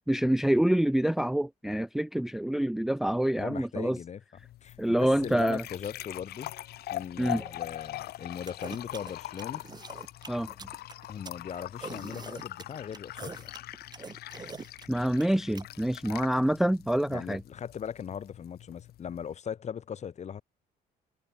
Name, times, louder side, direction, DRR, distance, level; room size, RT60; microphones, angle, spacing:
voice 1, 0.1-4.0 4.8-5.6 7.2-7.4 10.3-10.5 14.9-17.4, right 1 dB, ahead, 0.4 m, -26 dB
voice 2, 3.4-4.2 4.6-6.5 6.9-9.6 11.1-13.5 17.1-20.4, left 8 dB, 40° left, 2.1 m, -39 dB
sound 1, 4.4-19.3, left 14 dB, 70° left, 1.4 m, -42 dB
sound 2, 8.5-15.6, right 5 dB, 25° right, 1.5 m, -44 dB
cardioid pair, 110°, 17 cm